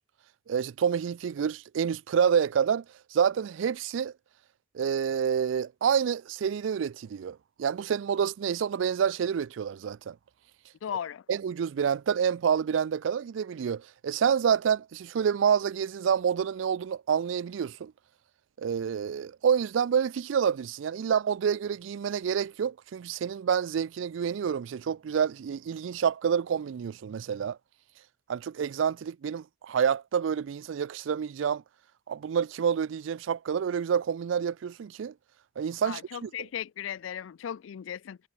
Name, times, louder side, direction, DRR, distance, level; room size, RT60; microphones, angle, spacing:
voice 1, 0.5-2.8 3.1-4.1 4.7-10.2 11.3-17.9 18.6-27.6 28.3-31.6 32.1-35.1 35.6-36.3, right 7 dB, 75° right, 0.4 m, -28 dB
voice 2, 10.8-11.2 35.8-38.2, left 9 dB, 90° left, 0.4 m, -36 dB
head